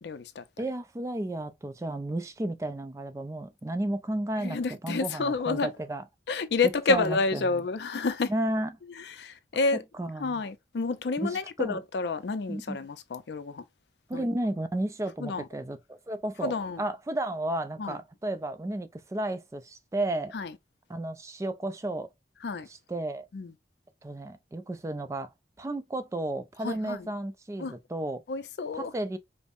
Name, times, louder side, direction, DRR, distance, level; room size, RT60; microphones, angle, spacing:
voice 1, 0.0-0.4 4.4-5.7 6.3-8.3 9.2-9.8 10.2-13.6 14.1-14.2 15.2-15.4 16.4-16.8 17.8-17.9 20.3-20.5 22.4-22.7 23.3-23.5 26.6-27.0 27.6-27.7 28.3-28.9, left 4 dB, 70° left, 0.5 m, -29 dB
voice 2, 0.6-6.1 6.6-7.6 8.3-8.8 9.7-10.4 11.2-11.8 12.5-12.8 14.1-20.3 20.9-22.1 22.6-23.3 24.0-25.3 25.6-28.2 28.7-29.2, right 1 dB, 15° right, 0.3 m, -33 dB
5.2 x 2.0 x 2.4 m
head